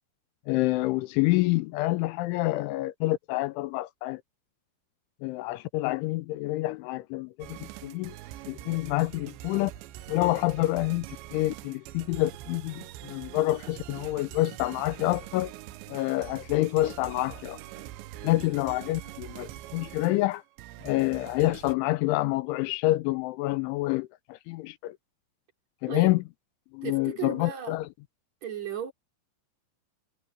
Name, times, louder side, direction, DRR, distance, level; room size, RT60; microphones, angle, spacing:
voice 1, 0.5-4.2 5.2-8.2 8.5-9.7 10.1-15.5 15.9-17.6 18.2-20.4 20.8-25.0 25.8-26.2 26.7-27.9, left 18 dB, 85° left, 3.1 m, -27 dB
sound 1, 7.4-21.8, right 14 dB, 75° right, 2.9 m, -44 dB
voice 2, 26.8-27.8 28.4-28.9, right 10 dB, 40° right, 4.5 m, -35 dB
omnidirectional pair, 5.5 m